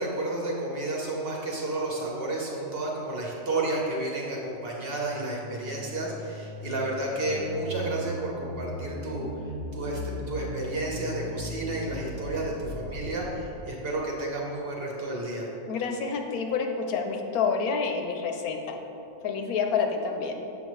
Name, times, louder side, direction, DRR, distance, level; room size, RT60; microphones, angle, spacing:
voice 1, 0.0-9.3 9.7-15.5, right 2 dB, 50° right, -2 dB, 0.9 m, -31 dB
sound 1, 4.9-13.7, equal, 70° right, 1.2 m, -38 dB
voice 2, 15.7-18.8 19.2-20.4, left 5 dB, 85° left, 4 dB, 1.1 m, -28 dB
7.3 x 5.5 x 3.1 m, 2.9 s
omnidirectional pair, 1.5 m